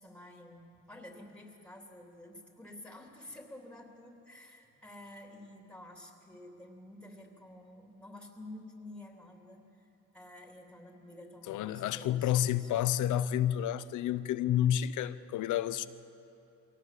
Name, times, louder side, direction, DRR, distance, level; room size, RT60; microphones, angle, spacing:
voice 1, 0.0-9.9 10.1-12.7, left 1 dB, 5° left, 3.3 m, -50 dB
voice 2, 11.5-15.9, left 11 dB, 80° left, 0.8 m, -30 dB
23.0 x 18.0 x 7.7 m
cardioid pair, 90°, 30 cm